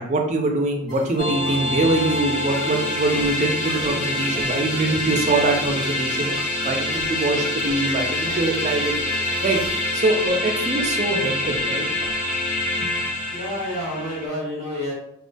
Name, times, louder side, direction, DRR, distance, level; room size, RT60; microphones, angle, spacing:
voice 1, 0.0-6.3 6.6-8.9 9.4-9.6 9.9-11.9 12.8-12.9, right 2 dB, 35° right, 2 dB, 0.3 m, -23 dB
sound 1, 0.9-11.3, equal, 90° left, 1.4 m, -42 dB
sound 2, 1.2-14.3, left 1 dB, 40° left, 0.5 m, -26 dB
Walk footsteps, 3.2-3.4 3.8-3.9 4.3-4.5 4.9-5.2 5.6-5.7 6.3-6.4 6.9-7.2 7.6-7.8 8.3-8.4 8.9-9.1 9.5-9.8 10.2-10.3 10.8-10.9 11.4-11.6 12.0-12.2, equal, 55° left, 0.9 m, -42 dB
voice 2, 13.3-14.9, equal, 20° left, -11 dB, 1.1 m, -29 dB
2.3 x 2.2 x 2.5 m, 0.72 s
head